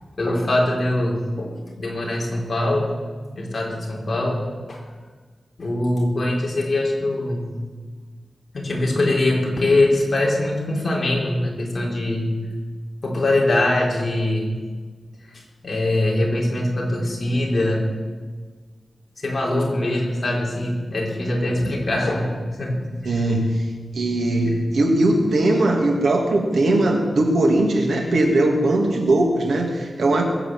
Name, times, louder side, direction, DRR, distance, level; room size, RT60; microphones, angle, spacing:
voice 1, 0.2-2.9 3.3-4.8 5.6-7.5 8.5-12.3 13.0-14.6 15.3-17.9 19.2-22.3 22.6-23.2, left 1 dB, 40° left, -2 dB, 4.0 m, -22 dB
voice 2, 23.0-30.2, right 2 dB, 90° right, 1 dB, 2.9 m, -20 dB
21.5 x 8.4 x 8.0 m, 1.5 s
wide cardioid pair, 160°, 0 cm